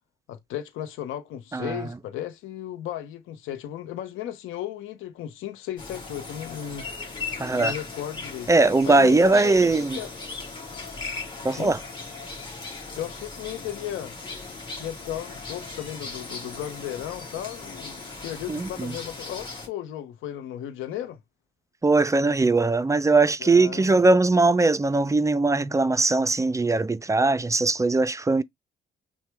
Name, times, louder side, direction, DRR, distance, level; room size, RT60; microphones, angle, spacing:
voice 1, 0.3-6.9 7.5-8.5 8.9-10.1 11.5-11.7 13.0-14.1 14.8-21.2 23.4-24.0, left 11 dB, 85° left, 0.7 m, -35 dB
voice 2, 1.5-1.9 7.4-7.7 8.5-10.0 11.4-11.8 18.5-18.9 21.8-28.4, right 3 dB, 15° right, 0.3 m, -20 dB
sound 1, 5.8-19.7, left 3 dB, 25° left, 1.9 m, -38 dB
5.8 x 2.2 x 3.3 m
cardioid pair, 90°, 20 cm